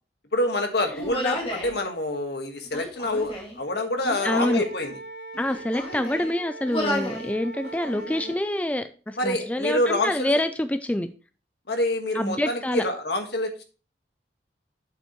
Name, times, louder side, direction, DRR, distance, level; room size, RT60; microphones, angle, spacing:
voice 1, 0.3-5.0 9.2-10.3 11.7-13.6, left 1 dB, 70° left, 5 dB, 1.5 m, -26 dB
Human voice, 0.9-1.7 2.7-3.6 4.0-4.7 5.3-6.3 6.7-7.3 7.6-8.3, left 1 dB, 30° left, 2.3 m, -32 dB
voice 2, 4.2-4.6 5.4-11.1 12.1-12.9, left 1 dB, 10° left, 10 dB, 0.4 m, -26 dB
Wind instrument woodwind instrument, 4.5-8.4, right 2 dB, 90° right, 1.4 m, -40 dB
8.3 x 7.7 x 3.1 m, 0.36 s
head